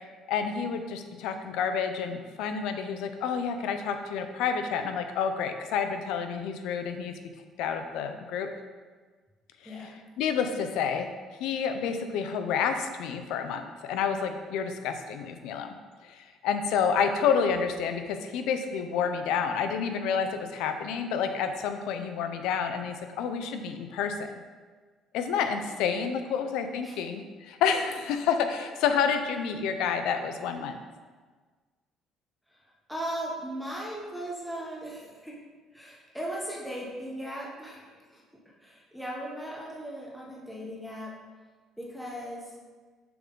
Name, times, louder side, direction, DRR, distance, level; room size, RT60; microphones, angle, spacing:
voice 1, 0.3-7.1 7.6-8.5 9.8-9.9 10.2-11.1 11.4-15.7 16.0-24.2 25.1-30.8, left 6 dB, 75° left, 7 dB, 0.7 m, -29 dB
voice 2, 32.9-35.4 35.7-38.2 38.6-41.1 41.8-42.5, right 1 dB, ahead, -4 dB, 1.0 m, -37 dB
7.0 x 6.0 x 3.8 m, 1.4 s
cardioid pair, 175°, 0 cm